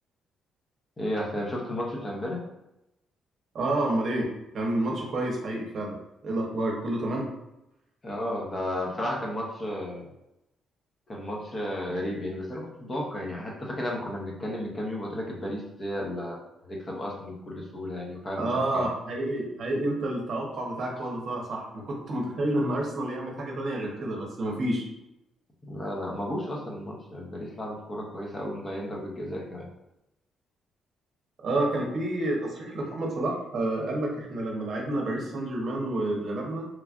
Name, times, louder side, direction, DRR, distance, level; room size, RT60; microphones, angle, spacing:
voice 1, 1.0-2.4 8.0-10.1 11.1-16.4 16.6-18.9 25.7-29.7, left 1 dB, 30° left, -1 dB, 0.7 m, -33 dB
voice 2, 3.5-5.9 6.2-7.3 18.3-24.9 31.4-36.7, right 1 dB, 55° right, -1 dB, 0.8 m, -29 dB
3.1 x 2.4 x 2.4 m, 0.89 s
cardioid pair, 90°, 0 cm